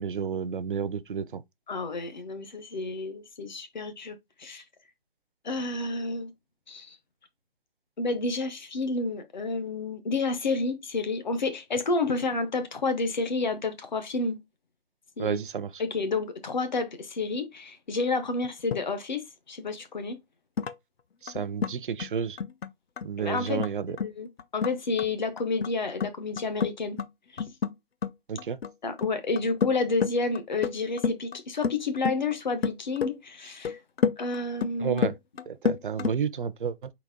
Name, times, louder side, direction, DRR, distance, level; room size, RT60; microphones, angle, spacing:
voice 1, 0.0-1.4 15.2-15.8 21.2-22.4 23.0-24.0 28.3-28.6 34.8-35.2 35.5-36.9, right 7 dB, 60° right, 0.5 m, -31 dB
voice 2, 1.7-4.6 5.4-6.3 6.7-7.0 8.0-14.4 15.2-15.4 15.8-20.2 23.2-23.6 24.0-24.3 24.5-27.0 27.3-27.4 28.8-33.8 34.2-35.0, left 3 dB, 50° left, 0.7 m, -30 dB
sound 1, 18.3-18.8 20.6-20.7 21.3-21.7 22.0-22.1 22.4-22.7 23.0-23.1 23.4-23.7 24.0-24.1 24.4-24.7 25.0-25.1 25.4-25.7 26.0-26.7 27.0-27.1 27.4-27.7 28.0-28.1 28.4-28.7 29.0-29.7 30.0-31.4 31.6-32.3 32.6-33.1 33.6-34.7 35.0-36.1, left 6 dB, 85° left, 0.5 m, -29 dB
4.0 x 2.9 x 3.6 m
hypercardioid pair, 170°, 30 cm